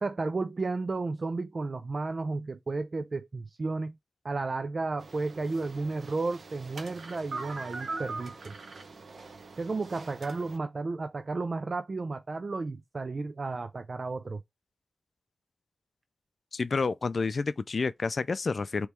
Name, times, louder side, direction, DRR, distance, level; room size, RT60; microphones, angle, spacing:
voice 1, 0.0-4.0 4.2-8.5 9.6-14.4, right 3 dB, 45° right, 0.3 m, -33 dB
sound 1, 5.0-10.6, right 3 dB, 70° right, 0.7 m, -42 dB
voice 2, 16.5-18.9, left 4 dB, 55° left, 0.3 m, -29 dB
3.4 x 3.0 x 4.3 m
wide cardioid pair, 130°, 0 cm